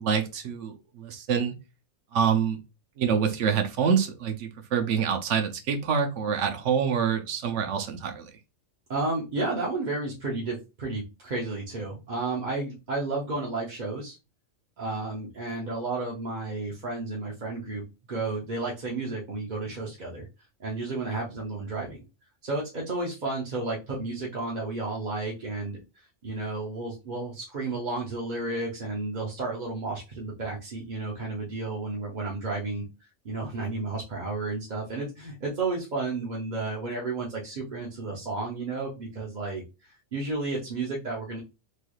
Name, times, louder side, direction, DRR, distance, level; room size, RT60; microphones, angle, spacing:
voice 1, 0.0-1.5 2.1-2.6 3.0-8.3, right 7 dB, 70° right, 6 dB, 0.9 m, -26 dB
voice 2, 8.9-14.2 14.8-20.3 20.6-22.0 22.4-41.4, right 3 dB, 45° right, -3 dB, 0.7 m, -32 dB
3.3 x 3.1 x 2.3 m, 0.28 s
omnidirectional pair, 1.3 m